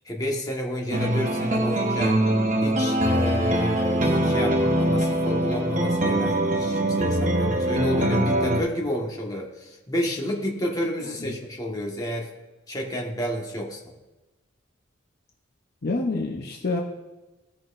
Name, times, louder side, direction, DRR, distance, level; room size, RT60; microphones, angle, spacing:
voice 1, 0.0-2.2 2.6-12.3 12.7-13.9, equal, 20° left, -1 dB, 1.4 m, -30 dB
sound 1, 0.9-8.6, right 1 dB, 40° right, 1.0 m, -23 dB
voice 2, 15.8-16.8, left 3 dB, 50° left, 1 dB, 0.8 m, -27 dB
16.5 x 6.1 x 2.5 m, 1.1 s
head